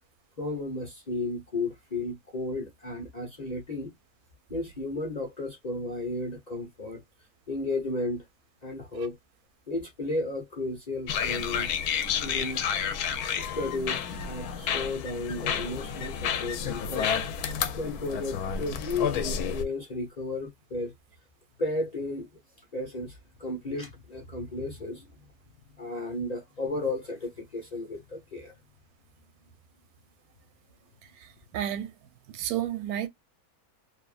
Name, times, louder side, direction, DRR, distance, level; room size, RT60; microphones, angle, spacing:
voice 1, 0.4-3.9 4.5-7.0 7.5-8.2 8.6-9.2 9.7-11.7 12.2-12.6 13.4-17.1 17.7-20.9 21.6-22.3 22.7-25.3 25.8-28.5, left 2 dB, 35° left, 0.7 m, -33 dB
sound 1, 11.1-19.7, left 7 dB, 90° left, 1.1 m, -30 dB
voice 2, 31.0-31.9 32.3-33.1, right 11 dB, 85° right, 1.1 m, -32 dB
2.7 x 2.5 x 2.4 m
omnidirectional pair, 1.6 m